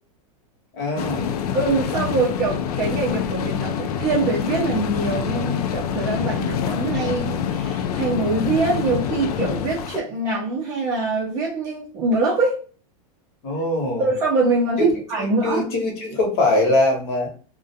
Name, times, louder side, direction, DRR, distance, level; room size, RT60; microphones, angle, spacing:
voice 1, 0.7-1.3 13.4-14.1 15.2-17.3, left 2 dB, 40° left, 2 dB, 0.9 m, -22 dB
sound 1, 1.0-10.0, left 8 dB, 85° left, 0.4 m, -26 dB
voice 2, 1.5-12.6 14.0-15.6, right 3 dB, 20° right, -3 dB, 0.5 m, -23 dB
2.4 x 2.1 x 2.6 m, 0.39 s
supercardioid pair, 175°, 19 cm